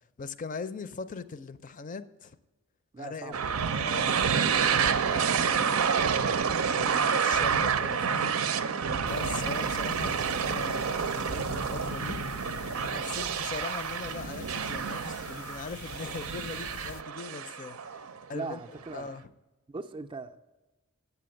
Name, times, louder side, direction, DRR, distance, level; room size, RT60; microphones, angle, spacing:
voice 1, 0.2-2.4 3.0-3.4 3.8-6.3 6.7-8.4 9.1-12.2 12.8-18.6 18.9-19.3, left 4 dB, 40° left, 0.5 m, -40 dB
voice 2, 2.9-3.8 8.8-9.1 18.3-19.1 19.7-20.4, right 3 dB, 25° right, 0.4 m, -40 dB
sound 1, 3.3-18.2, right 6 dB, 85° right, 0.6 m, -29 dB
sound 2, 9.1-17.0, left 5 dB, 85° left, 0.5 m, -43 dB
8.9 x 6.9 x 7.7 m
head